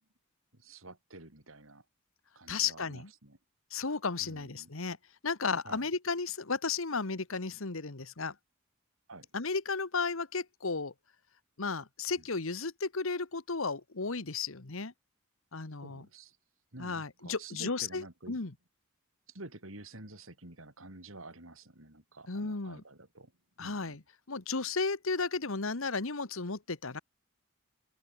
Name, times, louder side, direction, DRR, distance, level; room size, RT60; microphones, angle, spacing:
voice 1, 0.5-1.8 2.3-3.4 4.2-4.7 5.6-5.9 9.1-9.3 15.8-16.4 16.7-18.4 19.3-23.3 23.6-24.0, right 2 dB, 65° right, 5.0 m, -49 dB
voice 2, 2.5-3.1 3.7-5.0 5.2-8.3 9.3-10.9 11.6-14.9 15.5-16.1 16.8-18.5 22.3-22.8 23.6-27.0, left 4 dB, 70° left, 1.5 m, -34 dB
open air
head